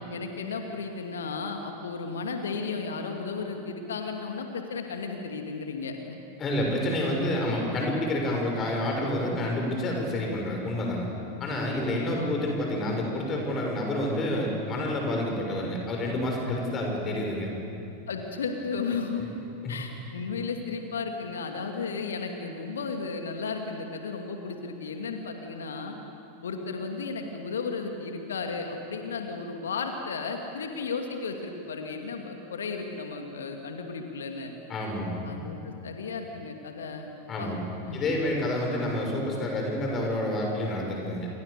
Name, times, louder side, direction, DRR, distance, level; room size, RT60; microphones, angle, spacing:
voice 1, 0.1-6.2 12.1-12.4 18.1-19.3 19.7-26.0 26.4-34.5 35.2-37.1 37.4-37.5 37.8-38.0, left 4 dB, 65° left, 4 dB, 2.5 m, -34 dB
voice 2, 6.4-11.1 11.4-17.5 19.6-19.7 34.7-35.2 37.3-37.6 37.9-41.3, left 1 dB, 25° left, 0 dB, 6.9 m, -28 dB
29.0 x 24.0 x 7.0 m, 2.7 s
figure-of-eight pair, 90°, 0 cm